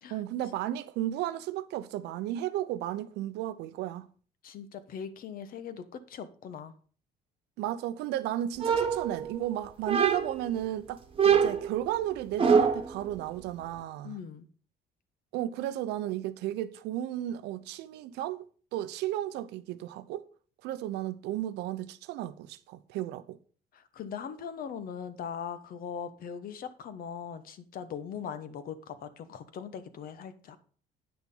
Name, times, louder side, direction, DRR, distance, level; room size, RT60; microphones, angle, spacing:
voice 1, 0.1-4.1 7.6-14.2 15.3-18.5 18.7-20.3 20.6-23.4, right 13 dB, 85° right, 0.7 m, -34 dB
voice 2, 4.4-6.7 14.0-14.5 23.7-30.6, left 7 dB, 60° left, 1.1 m, -40 dB
sound 1, 8.6-9.5 9.9-10.5 11.2-12.9, right 6 dB, 30° right, 1.3 m, -25 dB
9.0 x 6.2 x 5.4 m
cardioid pair, 110°, 17 cm